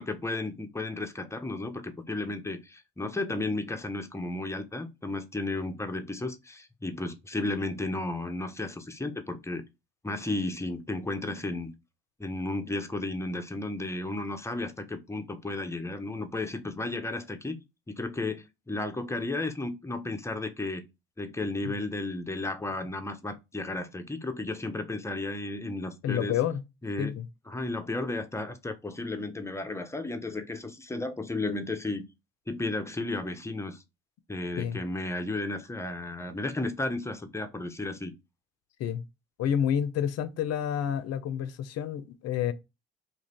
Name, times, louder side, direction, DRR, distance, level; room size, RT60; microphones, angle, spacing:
voice 1, 0.0-9.6 10.0-11.7 12.2-17.6 17.9-20.8 21.2-26.3 26.8-27.2 27.5-32.0 32.5-33.8 34.3-38.1, left 2 dB, 10° left, 0.6 m, -33 dB
voice 2, 26.0-26.6 27.0-27.2 34.6-34.8 38.8-39.0 39.4-42.5, left 9 dB, 55° left, 0.6 m, -29 dB
2.5 x 2.5 x 3.2 m
hypercardioid pair, 60°, 30 cm